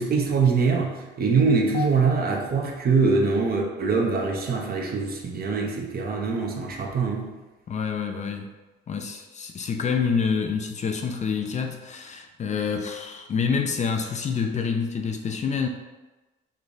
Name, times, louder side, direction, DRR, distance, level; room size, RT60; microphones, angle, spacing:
voice 1, 0.0-7.3, right 4 dB, 50° right, 1 dB, 0.7 m, -23 dB
voice 2, 7.7-8.5 8.9-15.7, left 6 dB, 35° left, 5 dB, 0.4 m, -27 dB
3.3 x 2.3 x 3.8 m, 1.2 s
cardioid pair, 90°, 20 cm